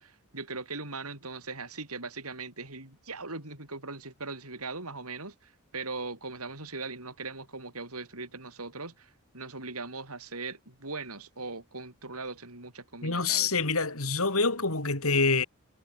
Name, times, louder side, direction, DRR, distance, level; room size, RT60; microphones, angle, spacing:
voice 1, 0.0-13.5, right 3 dB, 80° right, 7.4 m, -40 dB
voice 2, 13.0-15.5, left 4 dB, 70° left, 4.6 m, -26 dB
head